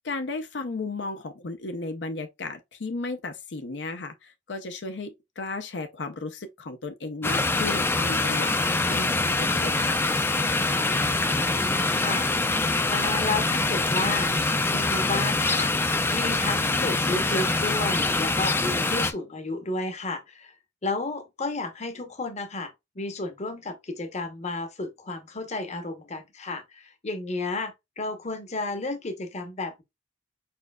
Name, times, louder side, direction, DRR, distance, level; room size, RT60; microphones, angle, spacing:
voice 1, 0.0-8.6 8.8-10.0, left 3 dB, 75° left, 0.6 m, -34 dB
sound 1, 7.2-19.1, left 2 dB, 15° left, 0.4 m, -24 dB
voice 2, 10.9-20.5 20.8-29.8, left 2 dB, 40° left, 0.9 m, -32 dB
4.8 x 4.4 x 2.2 m
head